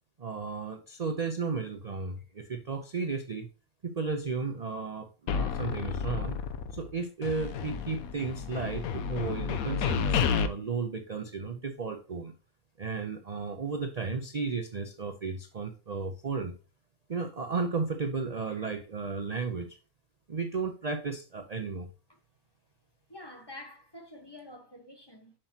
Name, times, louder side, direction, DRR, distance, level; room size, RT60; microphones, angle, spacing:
voice 1, 0.2-3.5 3.8-6.4 6.7-12.3 12.8-16.5 17.1-19.8 20.3-21.9, right 4 dB, 45° right, 0.5 m, -34 dB
sound 1, 5.3-6.9 7.2-10.5, left 6 dB, 75° left, 1.2 m, -31 dB
voice 2, 23.1-25.3, left 1 dB, 20° left, 1.2 m, -47 dB
7.5 x 6.2 x 2.8 m
omnidirectional pair, 1.5 m